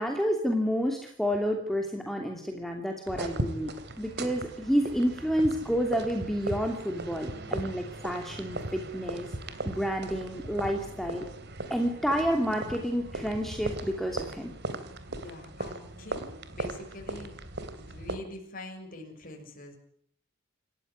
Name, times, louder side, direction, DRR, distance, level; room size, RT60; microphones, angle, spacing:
voice 1, 0.0-11.3 11.7-14.5, equal, ahead, 3 dB, 2.7 m, -30 dB
sound 1, 3.1-18.2, right 2 dB, 55° right, 3.0 m, -38 dB
voice 2, 15.1-17.3 17.8-19.7, left 2 dB, 45° left, 2 dB, 6.4 m, -44 dB
28.0 x 15.0 x 9.7 m, 0.64 s
head